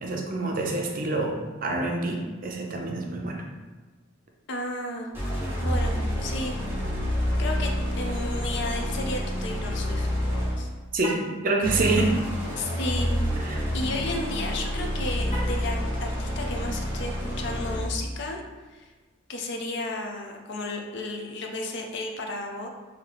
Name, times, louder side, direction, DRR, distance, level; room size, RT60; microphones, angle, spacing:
voice 1, 0.0-3.4 10.9-12.2 13.4-13.6, right 2 dB, 40° right, 1 dB, 0.5 m, -27 dB
voice 2, 4.5-6.6 7.4-7.7 8.0-10.1 10.6-10.7 12.6-13.1 13.7-18.4 18.7-18.9 19.3-22.7, left 2 dB, 55° left, 2 dB, 0.5 m, -33 dB
sound 1, 5.1-10.7 11.6-18.0, equal, 10° right, 0.9 m, -28 dB
Car, 10.9-11.4 15.2-15.7, equal, 30° left, 1.0 m, -36 dB
3.8 x 2.7 x 3.3 m, 1.3 s
head